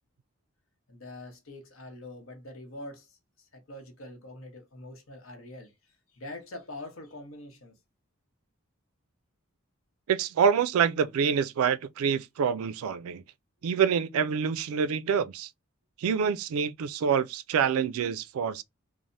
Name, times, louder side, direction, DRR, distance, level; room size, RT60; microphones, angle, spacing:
voice 1, 0.9-7.8, left 1 dB, 70° left, 0.9 m, -44 dB
voice 2, 10.1-13.2 13.6-15.5 16.0-18.6, right 7 dB, 85° right, 0.3 m, -26 dB
3.2 x 2.0 x 2.5 m
head